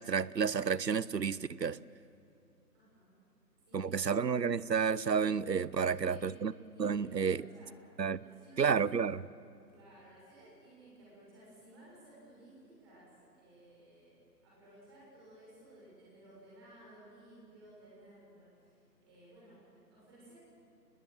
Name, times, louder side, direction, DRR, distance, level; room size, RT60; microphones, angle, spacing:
voice 1, 0.0-1.8 3.7-6.5 6.8-7.4 8.0-8.2 8.6-9.2, right 6 dB, 75° right, 0.8 m, -31 dB
voice 2, 2.7-3.1 3.7-4.2 5.8-6.5 6.7-7.7 8.1-8.8 9.7-13.1 13.3-18.7 19.0-20.3, right 1 dB, 15° right, 6.4 m, -57 dB
27.5 x 20.5 x 7.8 m
figure-of-eight pair, 160°, 50 cm